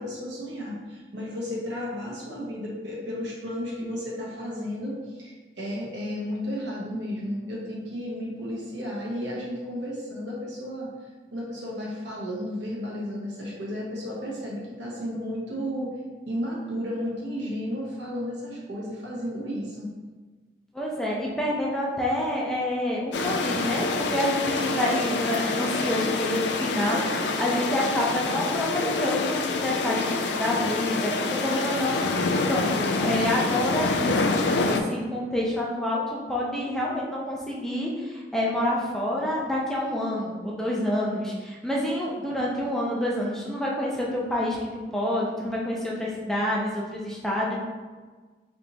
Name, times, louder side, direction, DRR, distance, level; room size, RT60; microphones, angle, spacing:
voice 1, 0.0-10.9 11.3-15.9 16.3-19.9, equal, 90° right, -4 dB, 1.2 m, -33 dB
voice 2, 20.7-47.6, left 1 dB, 5° left, -4 dB, 0.5 m, -28 dB
sound 1, 23.1-34.8, left 3 dB, 75° left, 0.4 m, -27 dB
3.4 x 2.9 x 3.9 m, 1.4 s
head